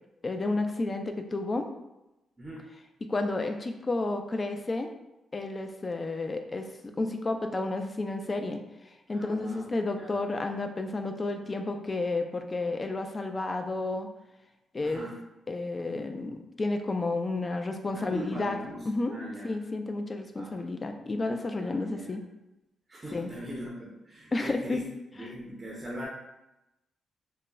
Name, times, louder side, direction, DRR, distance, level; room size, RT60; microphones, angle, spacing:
voice 1, 0.2-1.7 3.1-4.9 5.3-6.7 7.0-8.6 9.1-14.1 14.7-15.1 15.5-18.6 18.9-19.1 19.4-22.2 23.1-23.3 24.3-24.8 25.2-25.3, left 2 dB, 30° left, 5 dB, 0.3 m, -31 dB
voice 2, 9.1-9.7 10.0-10.1 14.8-15.1 17.9-19.5 20.3-20.6 21.6-22.1 22.9-24.8 25.2-26.1, equal, 25° right, -4 dB, 0.5 m, -41 dB
3.5 x 2.0 x 2.2 m, 0.95 s
cardioid pair, 95°, 0 cm